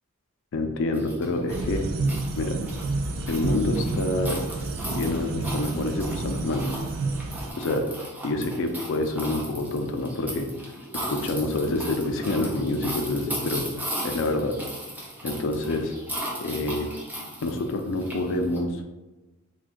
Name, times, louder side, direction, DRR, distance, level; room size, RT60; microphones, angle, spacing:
voice 1, 0.5-1.8 2.4-2.6 3.3-4.4 4.9-6.7 7.6-7.9 8.2-10.5 10.9-14.5 15.2-15.9 16.4-16.9 17.4-18.8, left 2 dB, 60° left, 5 dB, 0.4 m, -27 dB
sound 1, 0.9-18.6, right 1 dB, 10° right, 0.5 m, -37 dB
sound 2, 1.5-7.5, right 2 dB, 70° right, 0.3 m, -29 dB
2.5 x 2.2 x 3.6 m, 1.1 s
head